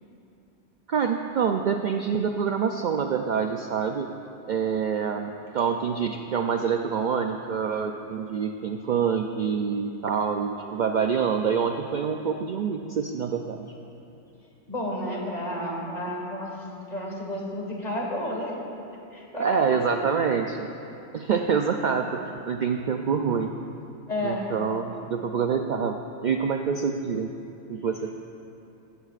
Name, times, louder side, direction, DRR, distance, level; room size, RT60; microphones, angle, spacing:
voice 1, 0.9-4.1 4.5-13.7 19.4-20.7 21.1-23.5 24.2-27.3 27.7-28.1, right 6 dB, 75° right, 4 dB, 0.4 m, -26 dB
voice 2, 14.7-18.5 19.1-20.0 24.1-24.5, left 1 dB, 35° left, -1 dB, 1.8 m, -31 dB
14.5 x 14.5 x 2.5 m, 2.8 s
omnidirectional pair, 1.3 m